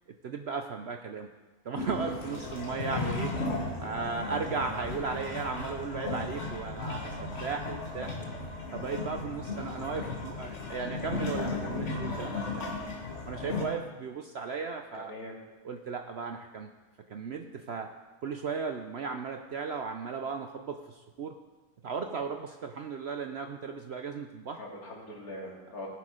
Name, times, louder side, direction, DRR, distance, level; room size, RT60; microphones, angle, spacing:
voice 1, 0.1-1.3 1.6-8.1 8.7-12.7 13.2-15.1 15.6-16.7 17.1-17.9 18.2-21.4 21.8-24.6, right 5 dB, 60° right, 5 dB, 0.7 m, -36 dB
sound 1, 1.8-13.6, left 3 dB, 50° left, 1.8 m, -35 dB
voice 2, 14.9-15.4 24.6-25.9, left 1 dB, 70° left, -2 dB, 2.7 m, -42 dB
18.0 x 6.5 x 4.9 m, 1.2 s
omnidirectional pair, 1.6 m